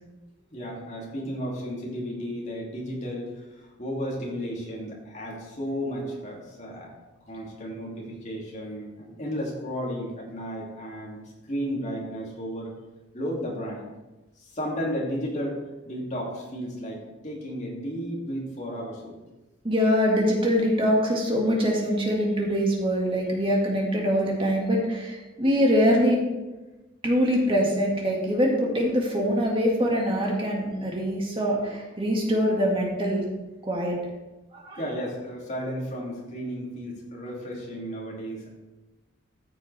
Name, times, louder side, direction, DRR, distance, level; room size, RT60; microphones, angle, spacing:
voice 1, 0.5-6.9 7.3-11.2 11.4-12.7 13.1-13.9 14.4-19.2 34.8-38.6, equal, 35° left, -4 dB, 2.5 m, -33 dB
voice 2, 19.6-26.2 27.0-33.2 33.6-34.0 34.5-34.8, equal, 25° right, -1 dB, 1.9 m, -23 dB
14.0 x 6.8 x 3.4 m, 1.1 s
head